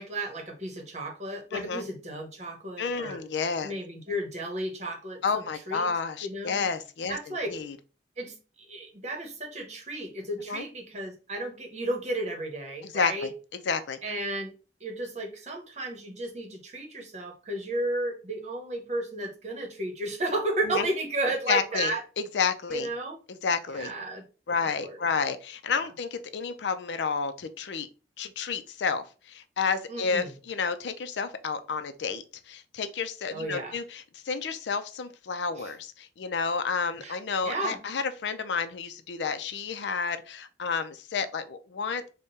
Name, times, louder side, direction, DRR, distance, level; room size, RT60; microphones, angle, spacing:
voice 1, 0.0-3.2 3.6-5.9 6.2-6.7 7.1-7.5 8.2-13.3 14.0-14.5 14.8-22.0 22.7-23.2 23.7-24.2 24.5-25.0 29.9-30.3 33.3-33.8 35.6-35.7 37.0-37.2 37.4-37.8, right 1 dB, 40° right, 2 dB, 1.0 m, -33 dB
voice 2, 1.5-1.8 2.8-3.7 5.2-7.8 10.5-10.6 12.8-13.3 13.7-14.0 20.6-20.9 21.5-22.9 23.3-23.9 24.5-27.9 28.2-42.0, left 5 dB, 85° left, 11 dB, 0.4 m, -30 dB
3.6 x 2.2 x 4.0 m, 0.34 s
head